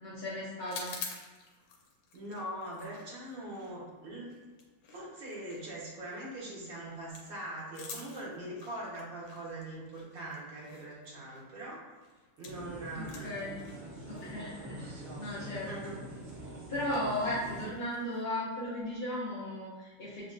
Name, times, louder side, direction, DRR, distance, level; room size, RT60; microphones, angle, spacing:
voice 1, 0.0-1.0 12.9-13.6 14.0-16.0 16.7-20.3, left 1 dB, 55° left, -9 dB, 0.5 m, -36 dB
sound 1, 0.6-12.7 12.9-18.2, left 5 dB, 80° left, 1.4 m, -50 dB
voice 2, 2.1-4.3 4.9-11.9 12.4-13.4 14.4-16.0, right 1 dB, 85° right, -6 dB, 2.0 m, -42 dB
sound 2, 12.4-17.7, right 1 dB, 60° right, 0.4 m, -45 dB
6.9 x 2.4 x 2.5 m, 1.3 s
omnidirectional pair, 2.0 m